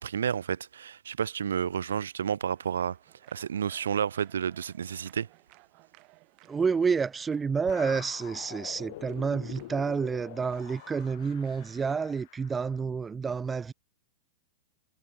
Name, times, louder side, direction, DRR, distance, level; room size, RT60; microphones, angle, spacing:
voice 1, 0.0-3.0 3.3-5.3, right 8 dB, 90° right, 0.4 m, -31 dB
sound 1, 2.5-12.0, right 27 dB, 45° right, 6.5 m, -60 dB
voice 2, 6.5-13.7, right 5 dB, 15° right, 0.4 m, -29 dB
sound 2, 7.7-12.7, left 17 dB, 65° left, 5.8 m, -45 dB
hypercardioid pair, 120°, 0 cm